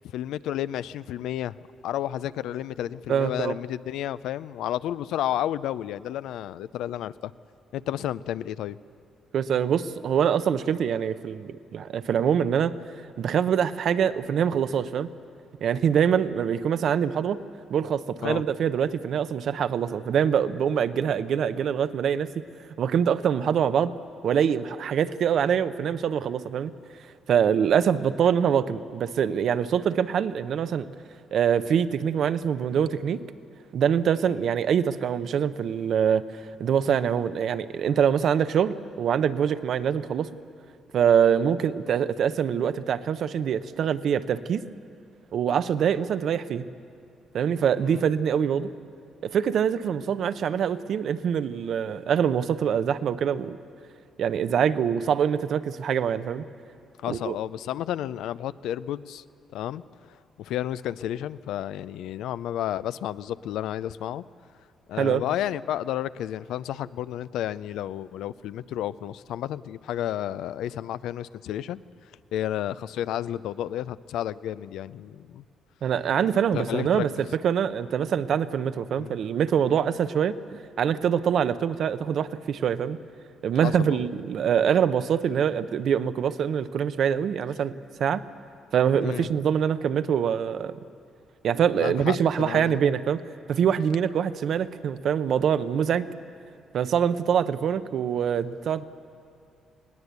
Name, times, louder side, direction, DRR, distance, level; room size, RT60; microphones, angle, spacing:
voice 1, 0.1-1.5 1.8-7.3 7.7-8.8 18.2-18.4 47.9-48.0 57.0-59.2 59.5-59.8 60.4-64.2 64.9-71.8 72.3-75.4 76.5-77.1 79.0-79.1 83.6-84.0 89.0-89.3 91.8-92.8, left 12 dB, 85° left, 16 dB, 0.4 m, -31 dB
voice 2, 3.1-3.6 9.3-12.7 13.2-15.1 15.6-17.4 17.7-22.3 22.8-23.9 24.2-26.7 27.3-30.9 31.3-33.2 33.7-36.2 36.6-40.3 40.9-44.6 45.3-46.7 47.3-48.7 49.2-53.6 54.2-56.4 57.1-57.4 65.0-65.2 75.8-77.1 77.4-83.0 83.4-88.2 88.7-90.8 91.4-93.2 93.5-96.1 96.7-98.8, right 8 dB, 65° right, 13 dB, 0.7 m, -24 dB
20.5 x 17.5 x 8.2 m, 2.4 s
cardioid pair, 90°, 0 cm